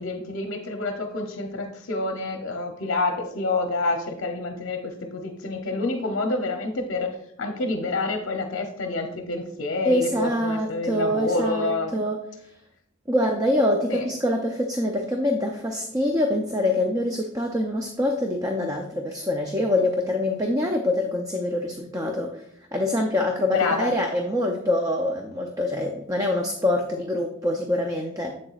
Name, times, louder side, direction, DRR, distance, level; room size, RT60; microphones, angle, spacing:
voice 1, 0.0-7.1 7.4-12.0 13.9-14.1 23.5-23.9, left 2 dB, 60° left, 4 dB, 0.7 m, -28 dB
voice 2, 9.8-12.2 13.1-22.4 22.7-28.4, left 1 dB, 15° right, 2 dB, 0.5 m, -25 dB
7.6 x 7.0 x 2.4 m, 0.75 s
head